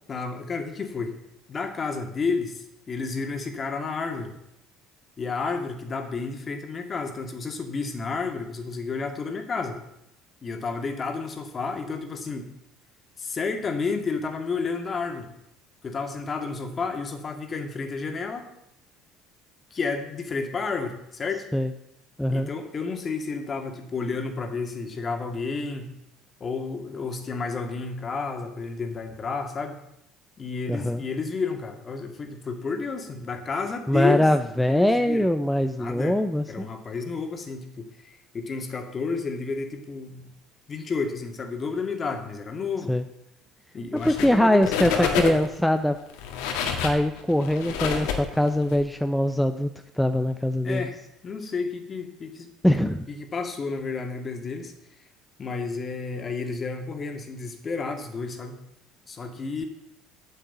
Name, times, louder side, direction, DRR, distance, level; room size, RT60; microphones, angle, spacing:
voice 1, 0.1-1.1 1.5-4.3 5.2-9.8 10.4-12.5 13.2-15.3 15.8-18.5 19.7-21.5 22.3-25.9 26.4-29.8 30.4-34.3 34.7-35.3 35.8-36.2 36.5-40.3 40.7-42.9 43.7-45.4 50.6-51.0 51.2-52.5 53.1-54.7 55.4-58.6 59.1-59.7, left 4 dB, 35° left, 5 dB, 2.1 m, -31 dB
voice 2, 22.2-22.5 30.7-31.0 33.9-36.7 42.9-43.0 44.0-46.0 46.8-49.7 49.9-50.9 52.6-53.1, left 1 dB, 5° left, 7 dB, 0.7 m, -22 dB
sound 1, 44.0-44.4 44.6-45.6 46.1-48.8, left 7 dB, 85° left, 1.7 m, -28 dB
9.3 x 6.6 x 8.2 m, 0.83 s
supercardioid pair, 85°, 0 cm